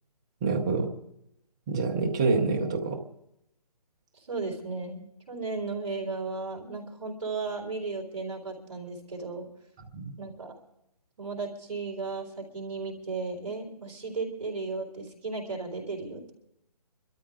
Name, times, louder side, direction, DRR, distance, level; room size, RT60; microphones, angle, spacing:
voice 1, 0.4-0.9 1.7-3.0 9.9-10.1, right 4 dB, 5° right, 2 dB, 0.5 m, -26 dB
voice 2, 4.1-9.5 10.2-10.6 11.2-16.3, right 4 dB, 50° right, 0 dB, 3.7 m, -35 dB
25.5 x 13.0 x 3.6 m, 0.82 s
hypercardioid pair, 170°, 21 cm